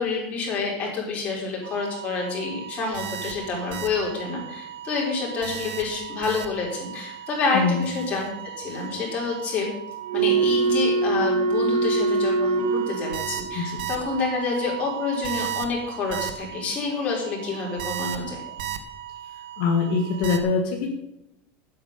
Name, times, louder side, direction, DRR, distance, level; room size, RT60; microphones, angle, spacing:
voice 1, 0.0-8.3 8.6-9.7 10.1-18.4, left 4 dB, 25° left, -2 dB, 4.4 m, -28 dB
sound 1, 1.7-2.2 2.5-3.9 4.2-4.5 4.8-6.9 7.4-16.3 17.8-18.8 19.1-19.2 20.2-20.4, right 4 dB, 80° right, 1.7 m, -27 dB
voice 2, 7.5-7.9 13.5-13.8 19.6-20.9, left 4 dB, 55° left, 1 dB, 1.7 m, -23 dB
11.5 x 8.6 x 6.8 m, 0.85 s
supercardioid pair, 170°, 5 cm